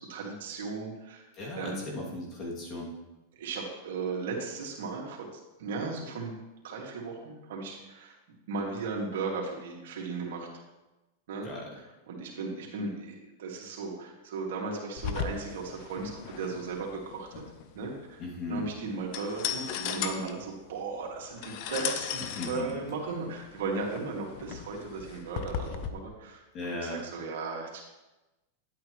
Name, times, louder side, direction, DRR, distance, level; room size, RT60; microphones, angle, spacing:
voice 1, 0.1-1.2 1.6-1.8 3.4-5.3 5.6-6.4 6.6-10.6 11.3-11.5 12.1-17.4 17.7-18.2 18.5-26.4 26.8-27.8, right 4 dB, 75° right, -1 dB, 2.3 m, -36 dB
voice 2, 1.3-2.9 11.4-11.7 18.2-18.7 22.3-22.7 26.5-27.0, left 2 dB, 35° left, -3 dB, 2.7 m, -36 dB
sound 1, 15.0-25.9, left 9 dB, 50° left, 0.8 m, -37 dB
10.5 x 8.4 x 3.2 m, 1.0 s
supercardioid pair, 135°, 0 cm